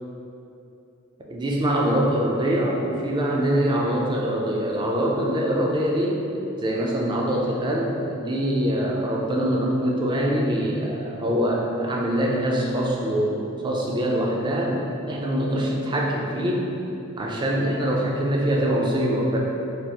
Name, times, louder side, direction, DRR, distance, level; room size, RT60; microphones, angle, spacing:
voice 1, 1.3-6.2 6.6-16.7 17.2-19.4, equal, 20° right, -2 dB, 0.3 m, -24 dB
3.2 x 2.3 x 2.8 m, 2.8 s
head